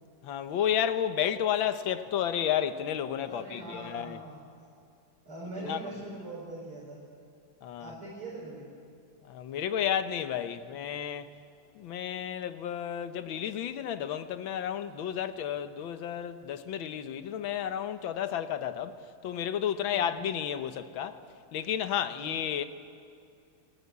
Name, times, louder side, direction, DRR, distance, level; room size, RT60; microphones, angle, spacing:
voice 1, 0.2-4.2 5.6-5.8 7.6-7.9 9.3-11.3 11.8-19.0 19.2-21.2 21.5-22.6, left 9 dB, 70° left, 1.8 m, -32 dB
voice 2, 3.2-4.4 5.2-7.0 7.8-8.7 19.9-20.2 22.0-22.4, right 2 dB, 85° right, 5.4 m, -42 dB
30.0 x 18.5 x 8.4 m
omnidirectional pair, 2.3 m